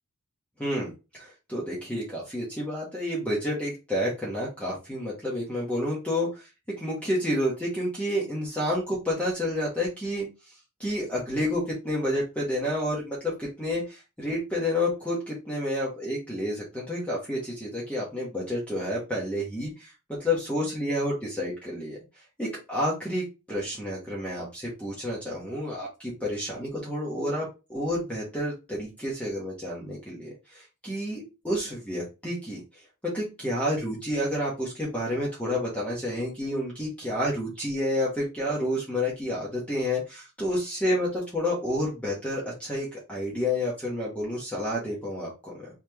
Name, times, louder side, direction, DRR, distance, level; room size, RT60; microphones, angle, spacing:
voice 1, 0.6-6.5 6.8-10.3 10.8-22.0 22.4-32.6 33.0-45.7, left 1 dB, 5° left, -5 dB, 1.2 m, -30 dB
4.1 x 3.4 x 2.9 m, 0.28 s
head